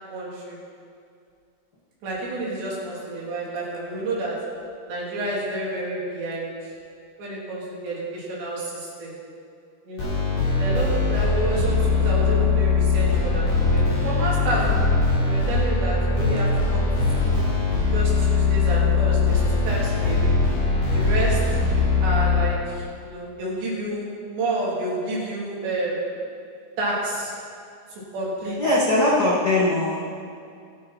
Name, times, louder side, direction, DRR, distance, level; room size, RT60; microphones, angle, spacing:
voice 1, 0.1-0.6 2.0-4.4 4.9-6.7 7.2-9.1 9.9-10.1 10.6-14.8 15.2-16.9 17.2-17.4 17.9-20.4 20.9-21.4 22.0-26.1 26.8-27.3 27.9-28.6, right 1 dB, 85° right, -6 dB, 5.7 m, -29 dB
sound 1, 10.0-22.4, left 4 dB, 90° left, 6.8 m, -21 dB
voice 2, 28.6-30.1, left 1 dB, 60° left, -6 dB, 1.0 m, -21 dB
24.0 x 10.0 x 4.4 m, 2.3 s
omnidirectional pair, 4.9 m